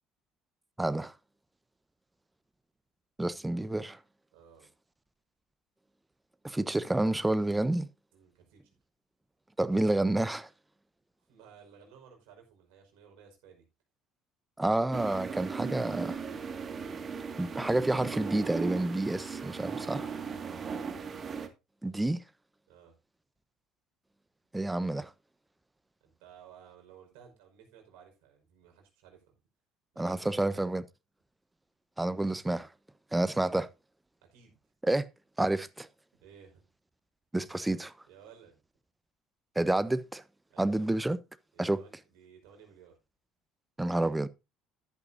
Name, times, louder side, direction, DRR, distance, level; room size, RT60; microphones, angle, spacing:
voice 1, 0.8-1.1 3.2-4.0 6.4-7.9 9.6-10.5 14.6-16.2 17.4-20.0 21.8-22.2 24.5-25.1 30.0-30.8 32.0-32.7 33.1-33.7 34.8-35.1 35.4-35.9 37.3-37.9 39.5-40.2 40.6-41.2 41.6-41.8 43.8-44.3, right 2 dB, 10° right, 1.0 m, -29 dB
voice 2, 4.3-4.7 8.1-8.8 11.3-13.7 19.8-20.7 22.7-23.0 26.0-29.4 29.9-30.6 34.3-34.6 36.1-36.6 38.0-38.6 40.5-40.9 41.5-43.0, right 7 dB, 70° right, 5.2 m, -56 dB
sound 1, 14.9-21.5, right 5 dB, 40° right, 2.1 m, -37 dB
13.0 x 11.0 x 2.7 m
hypercardioid pair, 60°, 0 cm